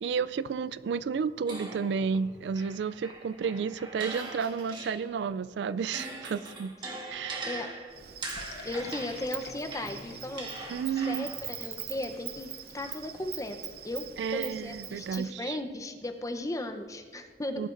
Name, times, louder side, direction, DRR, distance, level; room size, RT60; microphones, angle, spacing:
voice 1, 0.0-6.7 7.1-7.6 10.7-11.3 14.2-15.6 17.6-17.7, right 6 dB, 80° right, 17 dB, 0.3 m, -32 dB
sound 1, 1.5-5.3 5.7-11.5, right 2 dB, 25° right, 1.6 m, -42 dB
Insect, 7.9-15.3, right 10 dB, 60° right, 0.7 m, -43 dB
sound 2, 8.4-13.7, left 4 dB, 60° left, 1.0 m, -51 dB
voice 2, 8.6-10.5 11.1-12.5 12.7-17.7, left 1 dB, 20° left, 6 dB, 0.7 m, -36 dB
19.0 x 11.5 x 2.6 m, 1.6 s
head